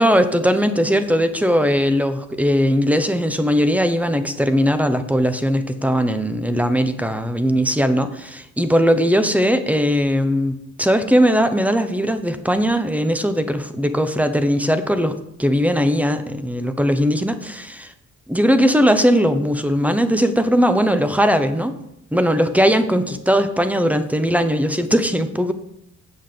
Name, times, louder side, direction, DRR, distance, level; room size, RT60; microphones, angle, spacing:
voice 1, 0.0-17.9 18.3-21.7 22.1-25.5, equal, 5° right, 9 dB, 0.9 m, -19 dB
8.0 x 5.9 x 6.9 m, 0.81 s
cardioid pair, 90°, 30 cm